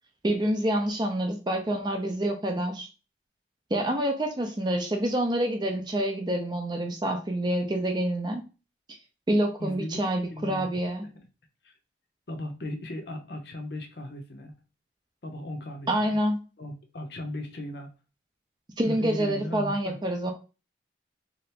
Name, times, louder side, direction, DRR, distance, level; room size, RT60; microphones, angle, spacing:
voice 1, 0.2-2.9 3.7-8.4 8.9-9.0 9.3-11.0 15.9-16.4 18.8-20.3, right 1 dB, 25° right, 4 dB, 0.5 m, -27 dB
voice 2, 9.6-10.8 11.1-11.2 11.6-11.7 12.3-14.5 15.2-16.2 16.6-17.9 18.8-20.0, left 1 dB, 60° left, 4 dB, 0.7 m, -37 dB
2.8 x 2.5 x 3.3 m, 0.32 s
head